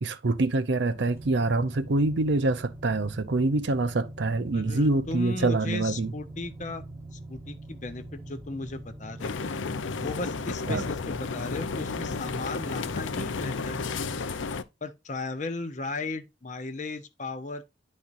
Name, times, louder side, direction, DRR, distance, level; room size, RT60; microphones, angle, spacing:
voice 1, 0.0-6.1 10.7-10.8, right 2 dB, 65° right, 0.6 m, -25 dB
sound 1, 0.9-14.3, right 1 dB, 15° right, 1.0 m, -43 dB
voice 2, 4.5-6.8 7.1-9.5 10.0-13.9 14.8-17.6, left 3 dB, 40° left, 0.7 m, -36 dB
sound 2, 9.2-14.6, left 4 dB, 85° left, 0.5 m, -32 dB
10.5 x 4.3 x 2.5 m
head